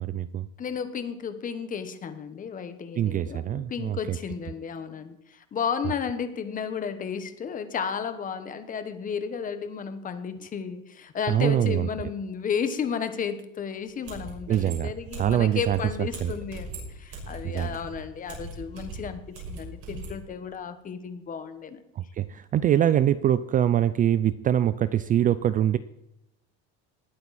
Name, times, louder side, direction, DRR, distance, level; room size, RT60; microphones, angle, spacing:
voice 1, 0.0-0.5 3.0-4.2 11.3-11.9 14.5-14.9 15.2-15.8 16.2-16.3 17.4-17.8 22.0-25.8, right 11 dB, 30° right, 15 dB, 0.4 m, -24 dB
voice 2, 0.6-21.8, left 6 dB, 25° left, 10 dB, 1.3 m, -33 dB
sound 1, 13.8-13.9 14.0-20.2, right 2 dB, 50° right, 6.2 m, -39 dB
19.5 x 9.0 x 4.2 m, 0.86 s
cardioid pair, 140°, 30 cm